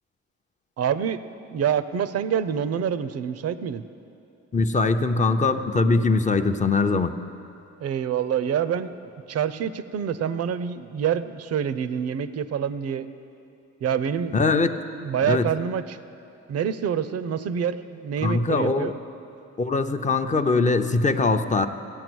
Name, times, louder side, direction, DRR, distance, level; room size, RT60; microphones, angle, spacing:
voice 1, 0.8-1.2 1.5-3.8 7.8-9.0 9.3-13.1 13.8-14.4 15.0-16.0 16.5-19.0, right 8 dB, 55° right, 14 dB, 0.6 m, -26 dB
voice 2, 4.5-7.1 14.3-14.7 15.3-15.5 18.2-18.9 19.6-21.7, left 3 dB, 25° left, 8 dB, 0.6 m, -22 dB
15.5 x 8.8 x 6.2 m, 2.8 s
cardioid pair, 90°, 30 cm